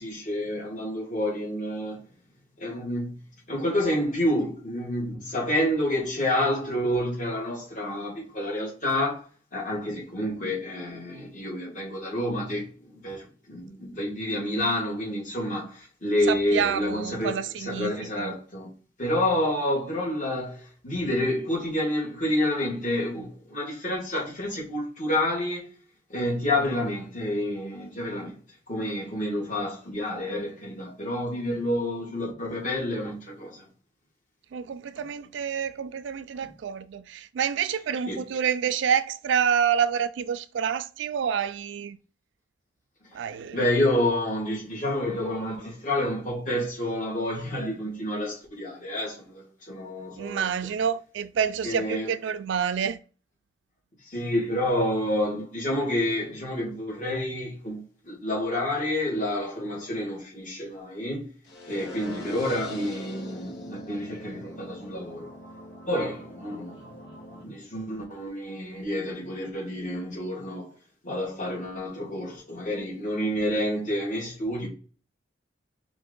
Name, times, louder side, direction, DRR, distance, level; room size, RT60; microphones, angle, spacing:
voice 1, 0.0-2.0 2.6-3.2 3.5-18.7 19.0-25.7 26.1-28.4 28.7-33.7 36.4-36.5 38.1-38.2 43.5-50.7 51.6-52.1 54.1-61.3 61.7-65.3 65.9-66.9 67.4-70.7 71.0-74.7, left 1 dB, 45° left, 2.0 m, -29 dB
voice 2, 16.3-18.3 34.5-42.0 43.1-43.6 50.2-53.0, right 7 dB, 70° right, 0.3 m, -28 dB
sound 1, 61.5-67.4, left 1 dB, 80° left, 1.4 m, -42 dB
4.5 x 2.7 x 3.8 m
head